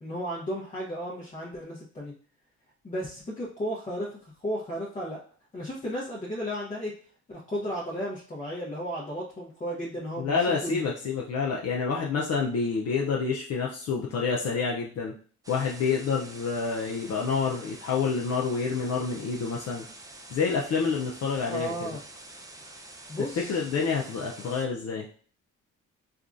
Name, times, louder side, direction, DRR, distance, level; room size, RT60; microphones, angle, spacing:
voice 1, 0.0-2.1 2.8-5.2 5.5-6.9 7.3-10.9 21.5-22.0 23.1-23.6, equal, 25° left, -6 dB, 0.8 m, -34 dB
voice 2, 10.2-15.1 15.5-19.9 20.3-22.0 23.4-25.1, left 5 dB, 55° left, -3 dB, 0.6 m, -28 dB
sound 1, 15.4-24.7, right 2 dB, 10° right, 0.5 m, -47 dB
3.5 x 2.4 x 2.5 m, 0.43 s
cardioid pair, 90°, 30 cm